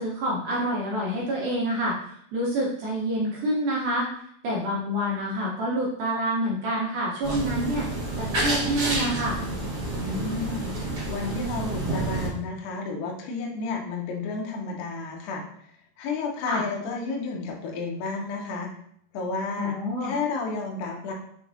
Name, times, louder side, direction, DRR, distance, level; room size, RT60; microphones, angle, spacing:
voice 1, 0.0-4.1 4.4-7.9 8.2-9.4 16.5-16.6 19.6-20.1, right 1 dB, 75° right, -5 dB, 2.0 m, -27 dB
sound 1, 7.2-12.3, right 2 dB, 45° right, 1.4 m, -29 dB
voice 2, 9.9-10.7 11.1-15.4 16.0-18.7 19.1-21.1, left 3 dB, 75° left, 0 dB, 2.1 m, -31 dB
5.9 x 3.1 x 2.6 m, 0.66 s
omnidirectional pair, 4.2 m